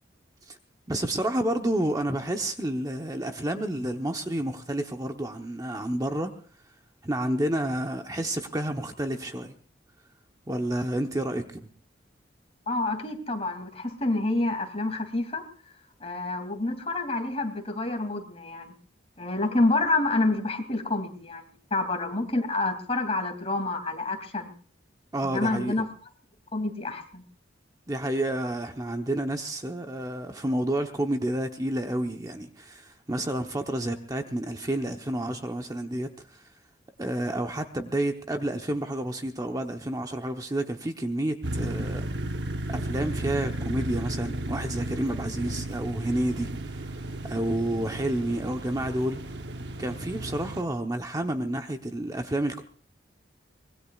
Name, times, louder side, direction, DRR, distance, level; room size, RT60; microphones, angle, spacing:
voice 1, 0.9-6.3 7.0-9.5 10.5-11.7 25.1-25.7 27.9-36.5 37.0-42.0 42.7-46.9 47.2-49.2 49.8-52.6, right 1 dB, 20° right, 5 dB, 1.0 m, -30 dB
voice 2, 12.7-15.4 16.0-18.7 19.2-24.5 25.2-25.9 26.5-27.2, left 2 dB, 35° left, 5 dB, 2.7 m, -28 dB
sound 1, 41.4-50.6, right 1 dB, 65° right, 0.9 m, -34 dB
24.5 x 20.5 x 2.4 m, 0.42 s
head